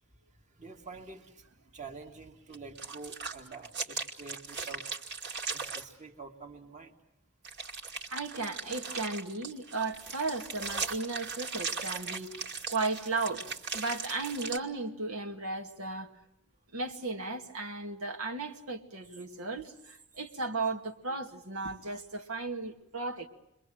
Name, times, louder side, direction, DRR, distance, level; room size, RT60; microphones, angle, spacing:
voice 1, 0.5-4.9 5.5-6.9, right 4 dB, 35° right, 2.2 m, -47 dB
sound 1, 2.5-5.8 7.4-14.6, right 5 dB, 55° right, 2.5 m, -38 dB
voice 2, 8.1-13.5 13.7-16.1 16.7-23.3, right 3 dB, 85° right, 2.4 m, -35 dB
29.5 x 23.0 x 7.8 m
head